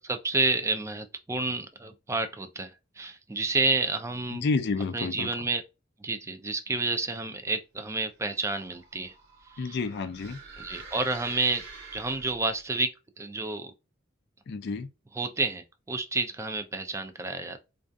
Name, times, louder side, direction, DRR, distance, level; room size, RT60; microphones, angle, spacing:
voice 1, 0.0-2.7 3.0-4.4 4.9-5.6 6.0-9.1 9.6-9.8 10.6-11.6 11.9-12.9 13.2-13.7 15.1-17.6, right 3 dB, 15° right, 0.3 m, -30 dB
voice 2, 4.3-5.3 9.6-10.4 14.5-14.9, left 4 dB, 55° left, 0.4 m, -30 dB
sound 1, 8.1-12.6, right 4 dB, 55° right, 1.1 m, -47 dB
2.6 x 2.3 x 2.2 m
head